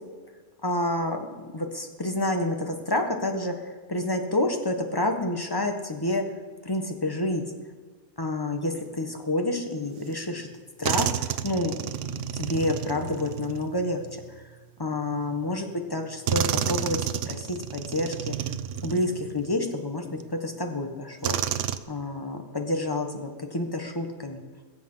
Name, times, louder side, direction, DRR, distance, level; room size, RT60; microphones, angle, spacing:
voice 1, 0.6-6.2 6.6-7.4 8.2-10.5 10.8-11.8 12.3-14.4 14.8-17.0 17.2-18.4 18.8-20.0 20.3-21.4 21.9-24.4, left 1 dB, 20° left, 4 dB, 1.4 m, -29 dB
sound 1, 10.1-10.2 10.8-14.5 15.4-15.5 16.3-19.6 20.2-20.3 21.2-21.8, right 9 dB, 75° right, 1.0 m, -30 dB
21.5 x 7.6 x 5.7 m, 1.5 s
omnidirectional pair, 1.3 m